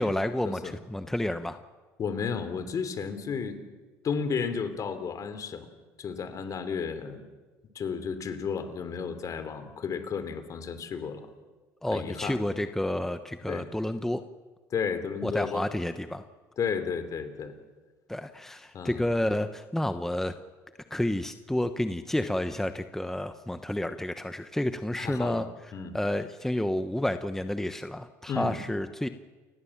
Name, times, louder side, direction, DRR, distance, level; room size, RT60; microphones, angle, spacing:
voice 1, 0.0-1.6 11.8-14.2 15.2-16.2 18.1-20.3 20.9-25.5 25.9-29.1, left 1 dB, 5° left, 9 dB, 1.0 m, -30 dB
voice 2, 2.0-3.6 4.0-5.7 6.0-7.2 7.7-11.3 11.9-12.4 13.5-13.7 14.7-15.6 16.6-17.5 18.7-19.0 25.0-26.0 28.3-28.6, left 6 dB, 45° left, 10 dB, 3.3 m, -33 dB
29.5 x 17.5 x 7.3 m, 1.3 s
supercardioid pair, 80°, 8 cm